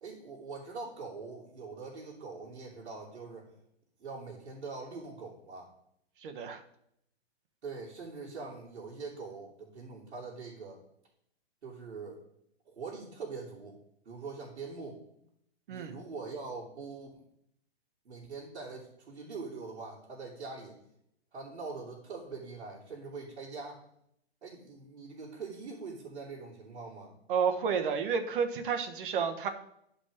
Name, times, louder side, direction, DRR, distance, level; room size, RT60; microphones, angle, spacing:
voice 1, 0.0-3.5 4.0-5.7 7.6-10.8 11.6-12.2 12.6-13.8 14.0-15.0 15.7-17.2 18.0-20.8 21.3-23.8 24.4-27.1, right 4 dB, 85° right, -5 dB, 2.9 m, -43 dB
voice 2, 6.2-6.6 15.7-15.9 27.3-29.5, right 6 dB, 50° right, 7 dB, 1.3 m, -31 dB
11.0 x 5.3 x 4.9 m, 0.75 s
hypercardioid pair, 150°, 33 cm